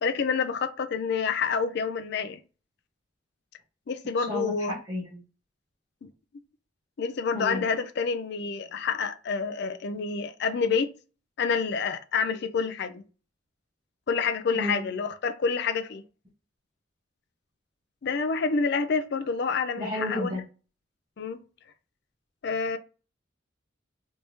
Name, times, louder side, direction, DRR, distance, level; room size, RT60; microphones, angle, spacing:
voice 1, 0.0-2.4 3.9-4.7 6.0-6.1 7.0-10.9 11.4-13.0 14.1-16.0 18.0-20.4 21.2-21.4 22.4-22.8, left 5 dB, 60° left, 0.4 m, -28 dB
voice 2, 4.2-5.2 7.3-7.6 14.5-14.8 19.8-20.4, left 1 dB, 20° right, 1.1 m, -32 dB
3.3 x 3.1 x 2.7 m
head